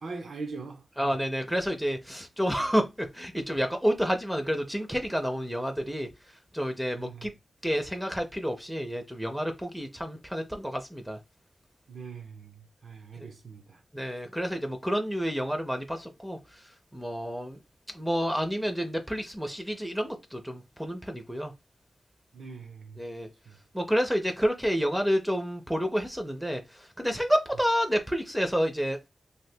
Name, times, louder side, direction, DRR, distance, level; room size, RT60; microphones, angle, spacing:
voice 1, 0.0-1.2 7.0-7.3 11.9-13.8 22.3-23.0 23.5-23.6, right 4 dB, 75° right, 0.6 m, -42 dB
voice 2, 1.0-6.1 6.5-7.3 7.6-11.2 13.9-16.6 16.9-17.6 17.9-21.5 23.0-23.3 23.7-29.1, equal, 5° right, 0.4 m, -29 dB
2.7 x 2.4 x 3.2 m
wide cardioid pair, 120°, 0 cm